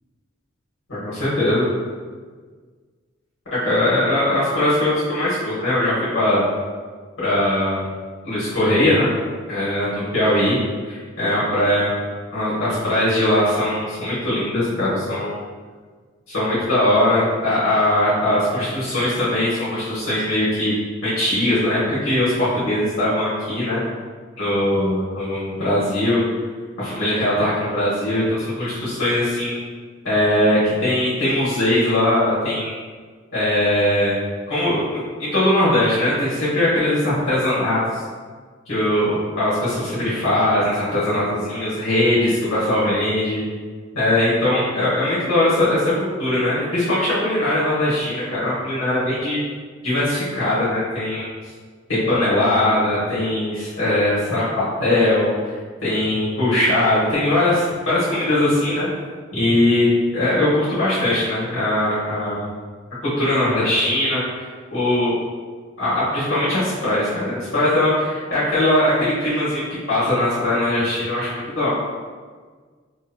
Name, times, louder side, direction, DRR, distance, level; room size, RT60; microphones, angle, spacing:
voice 1, 0.9-1.7 3.5-6.4 7.2-7.9 8.2-9.1 9.5-10.6 10.9-12.0 12.3-15.4 16.3-20.7 21.0-23.8 24.4-26.2 26.8-29.6 30.0-32.7 33.3-34.2 34.5-37.8 38.7-43.4 43.9-45.9 46.2-49.4 49.8-51.3 51.9-55.5 55.8-58.9 59.3-59.9 60.1-62.5 63.0-65.2 65.8-71.7, left 1 dB, 75° left, -10 dB, 1.3 m, -20 dB
4.7 x 2.8 x 2.2 m, 1.5 s
head